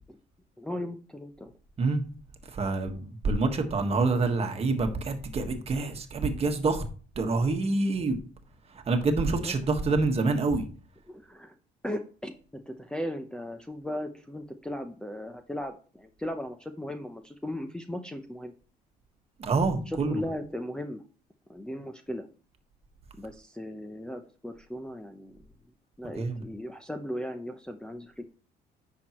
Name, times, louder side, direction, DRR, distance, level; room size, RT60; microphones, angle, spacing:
voice 1, 0.6-1.5 2.8-2.9 9.4-9.5 11.1-11.5 11.8-18.5 19.9-21.0 21.5-22.3 23.2-25.4 26.0-28.3, left 1 dB, 5° left, 0.7 m, -37 dB
voice 2, 2.5-6.8 7.1-8.2 8.7-10.6 19.4-20.2 26.2-26.4, right 3 dB, 35° right, 1.5 m, -27 dB
10.0 x 6.3 x 3.0 m
cardioid pair, 110°, 17 cm